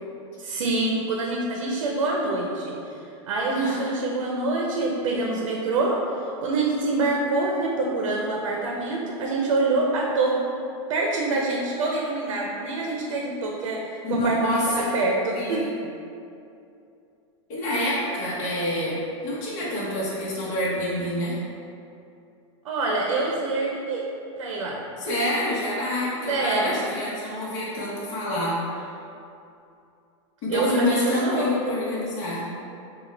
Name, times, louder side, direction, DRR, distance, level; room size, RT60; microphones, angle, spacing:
voice 1, 0.4-10.4 10.9-15.7 22.6-24.1 24.4-24.8 26.3-26.8 30.5-31.5, right 2 dB, 90° right, -1 dB, 0.7 m, -26 dB
voice 2, 3.6-3.9 14.0-14.7 15.3-15.6 17.5-19.0 19.2-21.3 25.0-28.8 30.4-32.4, left 1 dB, 45° left, -8 dB, 1.2 m, -27 dB
6.2 x 2.4 x 3.3 m, 2.6 s
supercardioid pair, 150°, 16 cm